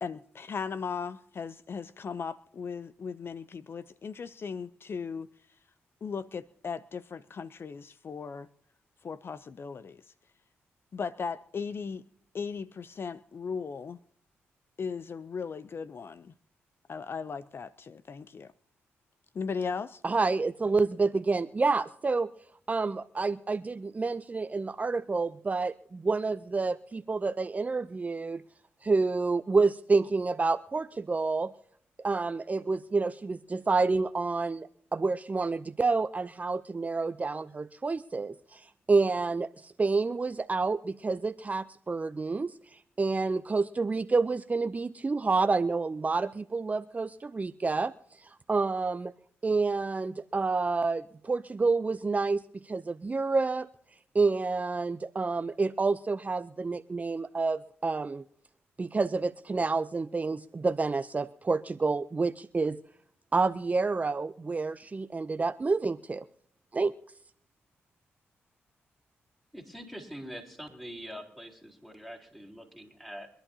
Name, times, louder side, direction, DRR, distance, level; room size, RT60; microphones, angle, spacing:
voice 1, 0.0-5.3 6.0-8.5 9.0-10.1 10.9-12.0 12.3-14.0 14.8-16.3 16.9-18.5 19.3-20.0, left 5 dB, 50° left, 0.5 m, -37 dB
voice 2, 20.0-22.3 22.7-28.4 28.8-31.5 32.0-49.1 49.4-53.7 54.1-58.2 58.8-62.8 63.3-66.2 66.7-66.9, right 4 dB, 30° right, 0.5 m, -29 dB
voice 3, 69.5-73.3, equal, 5° left, 4.1 m, -44 dB
24.5 x 11.0 x 2.8 m
supercardioid pair, 55°, 5 cm